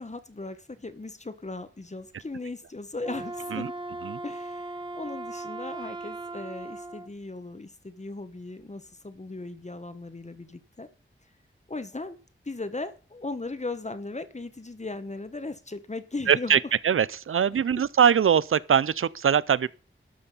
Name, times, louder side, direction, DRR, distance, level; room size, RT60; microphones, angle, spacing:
voice 1, 0.0-3.7 4.2-10.9 11.7-12.2 12.4-16.6 17.7-17.8, left 3 dB, 35° left, 1.2 m, -37 dB
Wind instrument woodwind instrument, 3.0-7.1, right 2 dB, 25° right, 1.1 m, -38 dB
voice 2, 16.3-19.7, right 8 dB, 90° right, 0.5 m, -22 dB
12.5 x 6.8 x 5.5 m
wide cardioid pair, 70°, 21 cm